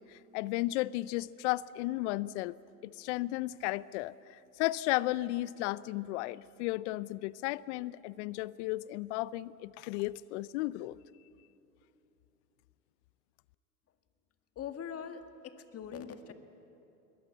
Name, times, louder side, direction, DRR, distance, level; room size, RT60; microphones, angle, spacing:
voice 1, 0.0-2.6 2.8-11.0, left 18 dB, 45° left, 20 dB, 0.6 m, -34 dB
voice 2, 14.6-16.3, left 7 dB, 30° left, 8 dB, 1.8 m, -42 dB
22.5 x 20.0 x 8.7 m, 3.0 s
hypercardioid pair, 100°, 49 cm